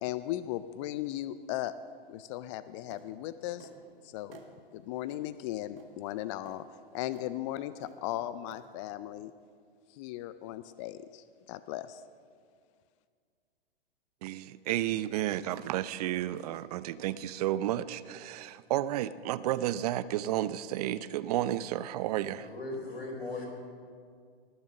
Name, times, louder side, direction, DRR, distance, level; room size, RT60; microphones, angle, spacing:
voice 1, 0.0-1.7 2.1-3.7 4.0-4.4 4.7-6.6 6.9-9.3 9.9-12.0, left 14 dB, 35° left, 14 dB, 0.4 m, -37 dB
sound 1, 2.9-3.1 3.6-3.8 4.3-4.5 5.1-5.2 5.8-5.9 6.5-6.6 7.1-7.3 7.8-8.0 8.5-8.6, right 5 dB, 70° right, 1.9 m, -52 dB
voice 2, 14.2-22.5, right 13 dB, 40° right, 16 dB, 0.5 m, -32 dB
voice 3, 22.3-23.5, left 2 dB, 85° left, 0 dB, 3.9 m, -38 dB
19.5 x 7.2 x 6.5 m, 2.1 s
figure-of-eight pair, 110°, 30 cm